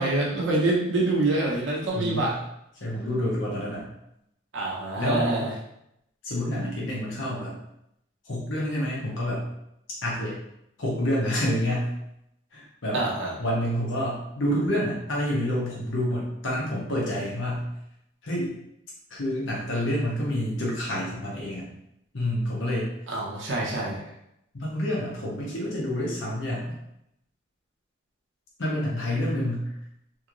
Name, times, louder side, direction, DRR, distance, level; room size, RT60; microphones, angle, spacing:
voice 1, 0.0-2.3 4.5-5.5 12.9-13.3 23.1-24.0, right 2 dB, 85° right, -4 dB, 0.8 m, -26 dB
voice 2, 1.9-2.3 2.8-3.9 5.0-5.3 6.2-7.6 8.2-9.5 10.0-10.4 10.8-11.9 12.5-13.0 13.4-17.7 18.2-18.5 19.1-21.7 22.1-22.9 24.5-26.8 28.6-29.7, equal, 85° left, -5 dB, 0.9 m, -28 dB
3.0 x 2.8 x 2.5 m, 0.79 s
head